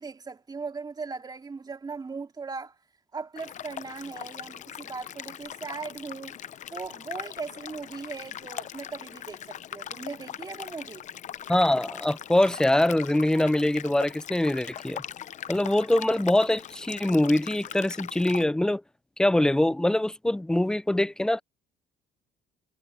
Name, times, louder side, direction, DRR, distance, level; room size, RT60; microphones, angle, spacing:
voice 1, 0.0-2.8 3.1-6.4 6.7-11.0, right 4 dB, 25° right, 2.5 m, -38 dB
sound 1, 3.4-18.4, left 10 dB, 45° left, 0.6 m, -41 dB
voice 2, 11.5-15.0 15.5-18.8 19.2-21.4, left 1 dB, 5° left, 0.3 m, -23 dB
cardioid pair, 110°, 17 cm